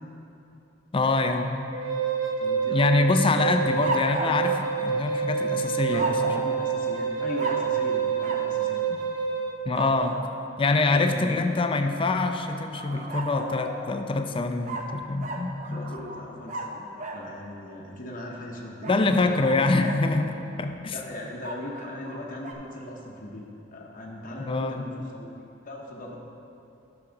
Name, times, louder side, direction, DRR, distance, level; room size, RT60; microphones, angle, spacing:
voice 1, 0.9-1.7 2.7-6.4 8.9-9.0 9.7-10.2 10.6-15.9 18.9-20.9 24.4-24.9, left 3 dB, 30° left, 6 dB, 0.4 m, -25 dB
Wind instrument woodwind instrument, 1.7-9.6, right 7 dB, 75° right, 0.8 m, -28 dB
voice 2, 2.4-3.1 3.4-3.7 5.9-8.9 10.9-11.4 15.7-19.6 20.9-26.2, left 1 dB, 45° left, -2 dB, 0.9 m, -39 dB
sound 1, 3.8-5.4 5.9-6.5 7.4-7.8 8.2-8.5 9.7-10.3 12.7-13.9 14.6-17.3 18.8-20.1 21.4-22.5, right 2 dB, 40° right, 0.7 m, -35 dB
10.5 x 6.0 x 3.9 m, 2.8 s
head